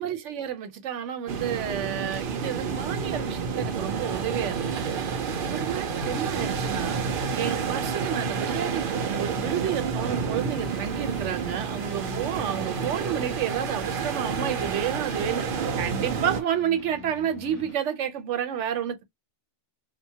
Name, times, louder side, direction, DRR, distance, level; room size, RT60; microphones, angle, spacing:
voice 1, 0.0-4.9 5.5-7.0 7.4-19.0, right 9 dB, 85° right, 1.0 m, -30 dB
sound 1, 1.3-16.4, right 6 dB, 60° right, 0.7 m, -29 dB
sound 2, 2.6-17.8, left 7 dB, 85° left, 1.0 m, -47 dB
sound 3, 10.3-15.4, left 4 dB, 45° left, 0.3 m, -46 dB
3.0 x 2.1 x 2.7 m
omnidirectional pair, 1.2 m